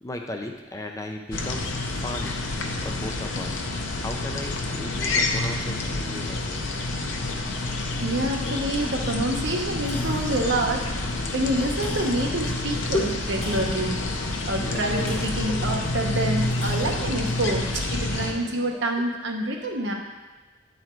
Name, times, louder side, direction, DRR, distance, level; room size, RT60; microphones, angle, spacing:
voice 1, 0.0-3.6 4.0-6.8 9.4-9.5 12.9-13.6 14.4-14.8 15.5-15.8 18.2-18.4 19.8-19.9, left 1 dB, 15° left, 3 dB, 0.5 m, -36 dB
sound 1, 1.3-18.3, left 2 dB, 75° left, 0.8 m, -28 dB
sound 2, 4.1-4.2 4.7-4.8 5.8-5.9 6.4-6.5 7.0-7.1 7.6-7.7 8.7-8.9 9.3-9.4 9.6-18.7, left 1 dB, 35° left, 2.2 m, -41 dB
voice 2, 8.0-10.9 11.3-14.0 14.5-17.6 17.9-19.9, right 1 dB, 65° right, 1 dB, 0.9 m, -27 dB
9.0 x 4.0 x 4.5 m, 1.2 s
head